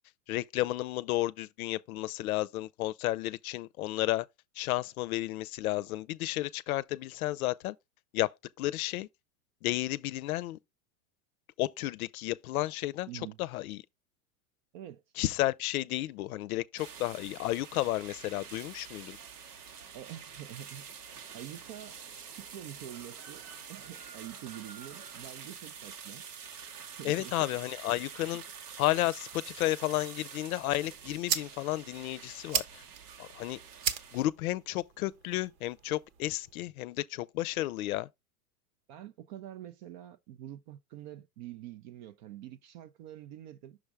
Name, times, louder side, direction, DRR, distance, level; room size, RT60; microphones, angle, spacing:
voice 1, 0.3-4.3 4.6-7.8 8.1-8.3 8.6-9.1 9.6-10.6 11.6-13.1 13.4-13.8 15.2-19.2 27.0-28.4 28.8-32.8 33.2-33.6 34.1-38.1, left 16 dB, 70° left, 0.6 m, -32 dB
voice 2, 13.1-13.4 14.7-15.0 19.9-20.9 21.3-22.0 22.3-26.2 27.0-27.3 38.9-43.8, right 12 dB, 35° right, 0.4 m, -46 dB
sound 1, 16.8-34.2, right 6 dB, 90° right, 1.4 m, -47 dB
sound 2, 30.6-36.6, right 8 dB, 65° right, 1.1 m, -38 dB
6.3 x 3.3 x 4.7 m
supercardioid pair, 130°, 45 cm